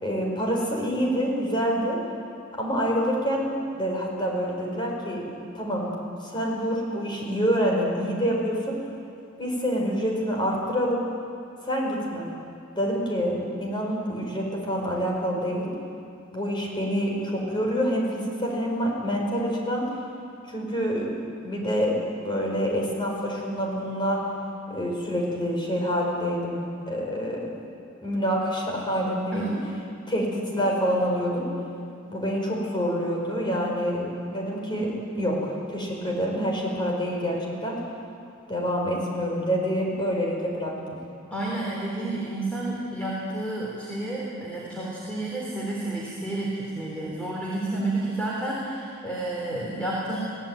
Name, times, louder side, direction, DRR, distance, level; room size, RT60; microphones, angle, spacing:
voice 1, 0.0-2.0 2.6-5.2 5.5-5.9 6.2-8.7 9.4-11.0 11.6-12.3 12.8-15.7 16.3-19.9 20.5-21.2 21.4-22.0 22.2-24.2 24.7-26.6 26.9-27.5 28.0-29.6 30.1-31.5 32.1-34.9 35.2-37.8 38.5-41.0, equal, 20° left, -1 dB, 5.1 m, -27 dB
voice 2, 41.3-50.2, right 2 dB, 5° left, -5 dB, 3.6 m, -30 dB
22.5 x 17.5 x 9.1 m, 2.6 s
head